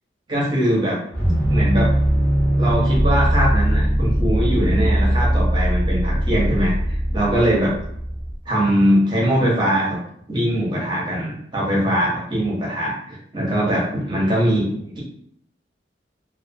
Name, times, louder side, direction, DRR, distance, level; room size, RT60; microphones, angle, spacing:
voice 1, 0.3-1.0 1.5-1.9 2.6-7.7 8.5-10.0 10.3-15.0, equal, 25° right, -4 dB, 0.8 m, -21 dB
sound 1, 1.1-8.3, right 1 dB, 10° left, 0.9 m, -20 dB
2.4 x 2.4 x 2.6 m, 0.68 s
head